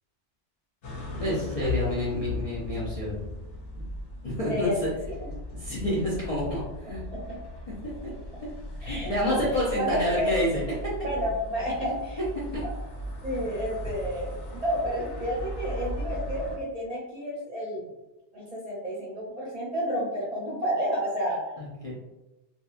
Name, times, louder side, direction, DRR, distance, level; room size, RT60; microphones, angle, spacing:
sound 1, 0.8-16.6, left 2 dB, 80° left, 0.9 m, -37 dB
voice 1, 1.2-3.1 4.2-4.9 5.5-7.0 7.8-8.1 8.4-8.5 8.8-10.9 11.8-11.9 12.5-12.6 13.4-13.5 21.6-21.9, equal, 40° left, -8 dB, 0.6 m, -29 dB
voice 2, 4.5-4.9 5.2-5.3 7.1-7.4 8.8-9.4 9.8-10.3 11.0-12.2 12.6-12.8 13.2-17.8 18.3-21.4, equal, 40° right, -7 dB, 0.7 m, -30 dB
2.8 x 2.3 x 2.3 m, 1.0 s
omnidirectional pair, 1.2 m